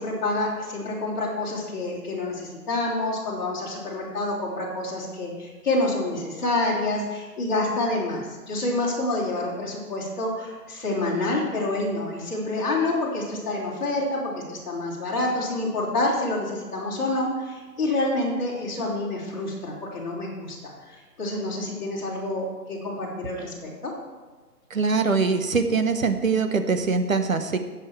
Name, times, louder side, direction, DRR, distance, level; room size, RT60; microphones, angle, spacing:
voice 1, 0.0-20.6 20.8-23.9, left 2 dB, 25° left, -8 dB, 3.5 m, -28 dB
voice 2, 24.7-27.6, right 4 dB, 55° right, 7 dB, 1.2 m, -23 dB
19.0 x 7.6 x 4.6 m, 1.3 s
hypercardioid pair, 170°, 49 cm